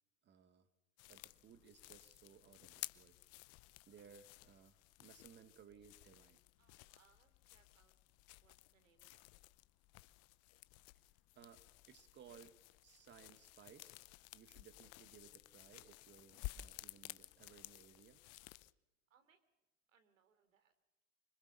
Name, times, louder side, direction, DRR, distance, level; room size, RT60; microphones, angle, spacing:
voice 1, 0.2-0.7 1.1-3.2 3.9-6.4 11.4-12.6 12.8-14.0 14.3-18.2, right 8 dB, 30° right, 11 dB, 1.8 m, -62 dB
sound 1, 1.0-18.7, left 18 dB, 40° left, 0.8 m, -55 dB
voice 2, 6.6-7.9 8.4-9.5 19.1-19.4 19.9-20.7, right 6 dB, 85° right, 9 dB, 3.3 m, -74 dB
25.0 x 20.5 x 7.0 m, 1.0 s
hypercardioid pair, 120°, 38 cm